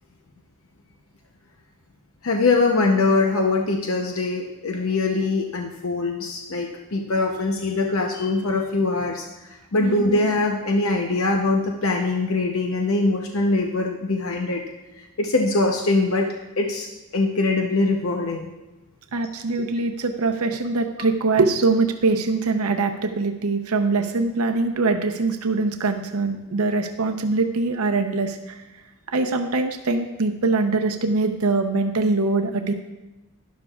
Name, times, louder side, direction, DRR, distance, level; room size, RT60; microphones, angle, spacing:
voice 1, 2.2-9.2 9.7-14.6 15.2-16.3 16.6-16.9 17.1-18.5, left 3 dB, 70° left, 2 dB, 0.8 m, -22 dB
voice 2, 19.1-28.4 29.1-32.7, right 3 dB, 80° right, 5 dB, 0.7 m, -23 dB
12.0 x 11.0 x 2.4 m, 1.1 s
head